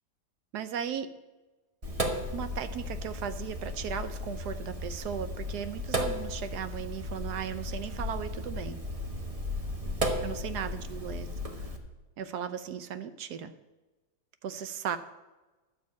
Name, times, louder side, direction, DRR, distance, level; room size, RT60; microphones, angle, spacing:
voice 1, 0.5-1.1 2.3-8.8 10.2-11.3 12.2-13.5 14.4-15.0, right 8 dB, 65° right, 11 dB, 1.2 m, -36 dB
Sink (filling or washing), 1.8-11.8, equal, 25° right, 0.9 m, -35 dB
11.5 x 5.9 x 8.3 m, 1.1 s
omnidirectional pair, 2.0 m